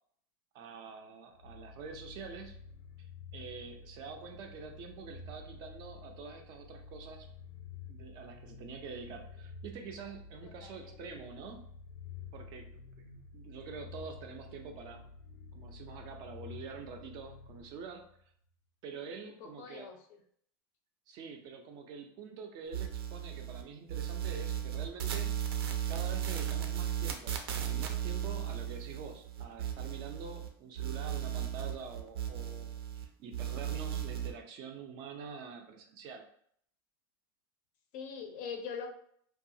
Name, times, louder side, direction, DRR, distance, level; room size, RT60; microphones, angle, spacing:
voice 1, 0.5-2.5 3.0-7.3 7.9-11.7 12.3-15.1 15.5-18.1 18.8-19.9 21.1-25.4 25.9-32.7 33.0-36.2, right 5 dB, 35° right, 4 dB, 0.4 m, -46 dB
sound 1, 1.3-18.2, left 4 dB, 85° left, 0.7 m, -50 dB
voice 2, 10.4-11.2 18.9-20.0 37.9-38.9, left 6 dB, 45° left, 5 dB, 0.5 m, -43 dB
sound 2, 22.7-23.6 23.9-30.5 30.8-33.1 33.3-34.3, right 9 dB, 90° right, 0.5 m, -36 dB
2.7 x 2.3 x 2.6 m, 0.64 s
supercardioid pair, 155°, 13 cm